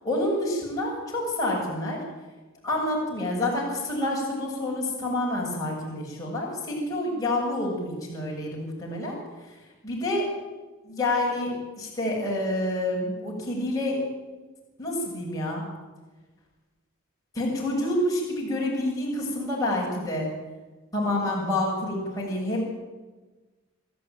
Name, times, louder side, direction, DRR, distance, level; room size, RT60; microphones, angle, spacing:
voice 1, 0.0-2.0 2.6-9.2 9.8-10.3 10.8-14.0 14.8-15.6 17.3-20.3 20.9-22.6, left 1 dB, 15° left, -4 dB, 6.9 m, -28 dB
28.5 x 13.0 x 9.2 m, 1.3 s
head